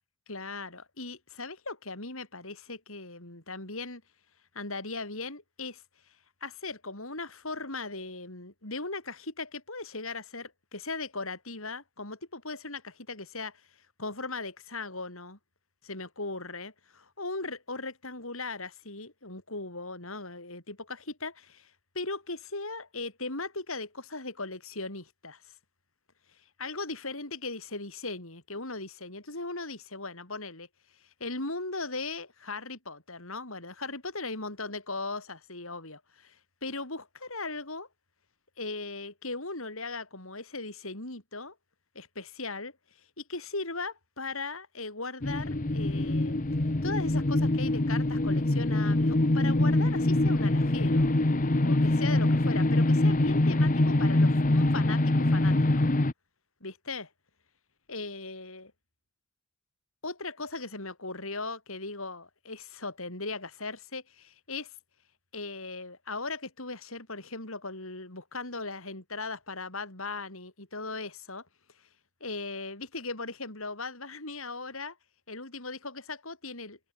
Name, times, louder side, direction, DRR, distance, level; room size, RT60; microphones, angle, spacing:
voice 1, 0.3-4.0 4.5-5.8 6.4-13.6 14.0-15.4 15.8-25.5 26.6-30.7 31.0-37.9 38.6-41.5 41.9-42.7 43.2-46.4 46.8-51.1 51.6-55.9 56.6-57.1 57.9-58.7 60.0-64.7 65.3-71.5 72.2-75.0 75.3-76.8, left 3 dB, 70° left, 6.5 m, -38 dB
sound 1, 45.2-56.1, left 1 dB, 40° left, 1.0 m, -24 dB
head